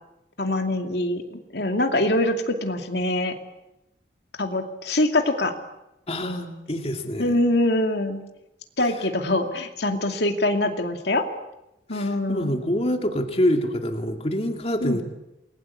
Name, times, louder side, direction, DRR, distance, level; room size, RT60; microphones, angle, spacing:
voice 1, 0.4-3.3 4.4-5.5 6.2-6.5 7.2-8.2 8.8-11.2 11.9-12.6 14.8-15.0, left 1 dB, 70° left, 5 dB, 2.6 m, -24 dB
voice 2, 6.1-7.4 11.9-15.0, equal, 35° left, 4 dB, 2.4 m, -26 dB
29.0 x 21.0 x 8.4 m, 0.90 s
head